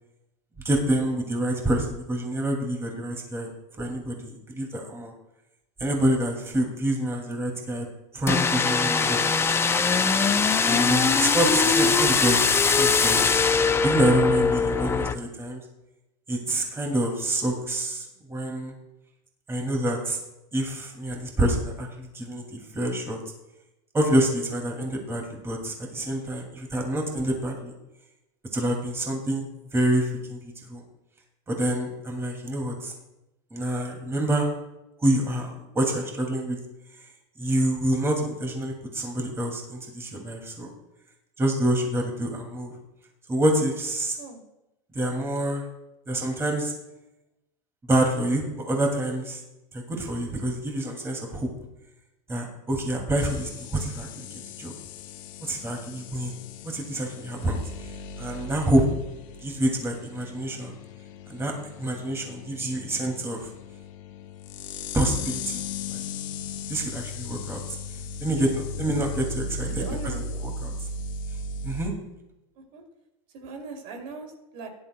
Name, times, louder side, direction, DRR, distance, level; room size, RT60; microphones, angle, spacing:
voice 1, 0.6-3.5 3.8-5.1 5.8-7.9 8.1-9.4 10.7-12.5 12.8-13.3 13.8-15.6 16.3-18.7 19.5-20.2 20.5-23.2 23.9-27.7 28.5-29.5 29.7-30.8 31.5-32.9 33.5-34.5 35.0-36.6 37.4-40.7 41.4-42.7 43.3-44.2 44.9-45.6 46.1-46.7 47.9-49.4 49.7-51.5 52.3-54.2 54.6-54.7 55.4-56.4 56.6-57.6 58.2-58.9 59.4-60.7 61.3-61.5 61.8-63.5 64.9-65.6 65.9-66.0 66.7-67.6 68.2-69.8 70.4-70.7 71.6-71.9, right 1 dB, 15° right, 1 dB, 2.3 m, -27 dB
sound 1, 8.3-15.1, left 5 dB, 15° left, 0.5 m, -21 dB
sound 2, 53.2-71.9, left 3 dB, 70° left, 1.4 m, -37 dB
voice 2, 69.7-70.2 72.6-72.8 73.3-74.7, right 3 dB, 65° right, 2 dB, 2.7 m, -39 dB
16.5 x 11.0 x 2.2 m, 0.93 s
supercardioid pair, 125°, 17 cm